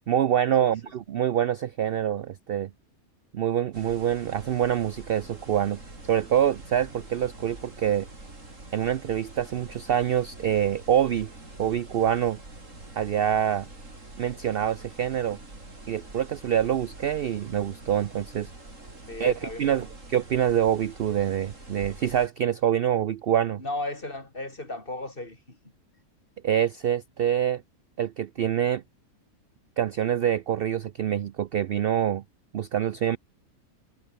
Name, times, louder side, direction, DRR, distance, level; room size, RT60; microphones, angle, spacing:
voice 1, 0.1-2.7 3.3-8.1 8.7-11.3 11.6-12.4 13.0-13.7 14.2-15.4 15.9-18.5 19.2-19.3 19.6-23.6 26.4-27.6 28.0-28.8 29.8-32.2 32.5-33.2, right 10 dB, 70° right, 0.5 m, -25 dB
sound 1, 3.7-22.3, right 2 dB, 55° right, 5.8 m, -45 dB
voice 2, 19.1-19.9 23.6-25.6, left 2 dB, 35° left, 4.2 m, -35 dB
omnidirectional pair, 1.6 m